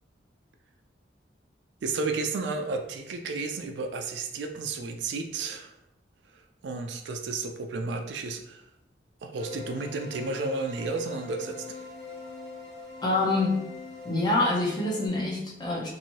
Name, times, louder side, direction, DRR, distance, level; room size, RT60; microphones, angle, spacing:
voice 1, 1.8-5.7 6.6-8.6 9.2-11.8, right 3 dB, 70° right, 5 dB, 0.3 m, -32 dB
sound 1, 9.4-15.1, left 4 dB, 55° left, 0.9 m, -42 dB
voice 2, 13.0-13.5 14.0-15.9, left 2 dB, 20° left, -3 dB, 0.6 m, -26 dB
2.9 x 2.6 x 2.8 m, 0.82 s
head